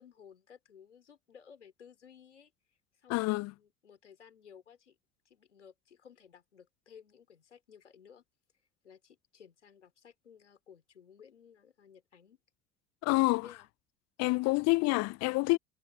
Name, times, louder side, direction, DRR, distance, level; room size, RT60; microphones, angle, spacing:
voice 1, 0.0-2.5 3.0-5.0 5.2-8.2 8.8-12.4 13.1-13.7 14.2-14.4, left 7 dB, 85° left, 4.6 m, -57 dB
voice 2, 3.1-3.5 13.0-13.5 14.2-15.6, left 23 dB, 50° left, 0.7 m, -27 dB
figure-of-eight pair, 65°, 35 cm